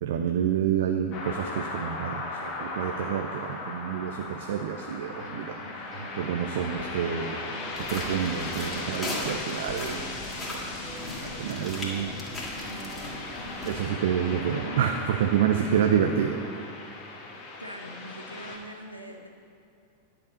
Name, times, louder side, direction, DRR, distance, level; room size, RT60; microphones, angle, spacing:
voice 1, 0.0-7.4 7.8-10.1 10.5-10.6 11.2-12.1 13.7-16.4, right 8 dB, 55° right, 5 dB, 0.5 m, -28 dB
sound 1, 1.1-18.6, left 3 dB, 35° left, 1.8 m, -38 dB
sound 2, 5.0-15.9, right 2 dB, 10° right, 2.4 m, -42 dB
sound 3, 7.7-13.8, left 1 dB, 10° left, 2.4 m, -38 dB
voice 2, 17.6-19.3, equal, 90° right, 3 dB, 0.9 m, -42 dB
10.5 x 5.2 x 7.0 m, 2.6 s
figure-of-eight pair, 90°, 0 cm